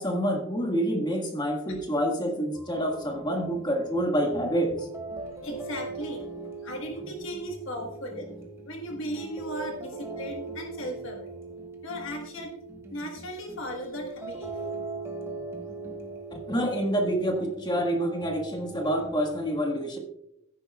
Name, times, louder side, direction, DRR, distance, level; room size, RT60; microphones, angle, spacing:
voice 1, 0.0-4.9 16.3-20.0, equal, 20° left, 3 dB, 1.5 m, -27 dB
sound 1, 2.6-19.4, right 3 dB, 10° right, 1.2 m, -40 dB
voice 2, 5.1-8.3 8.6-11.3 11.8-12.6 12.9-14.6, equal, 60° left, 1 dB, 1.4 m, -37 dB
15.0 x 9.8 x 2.3 m, 0.81 s
head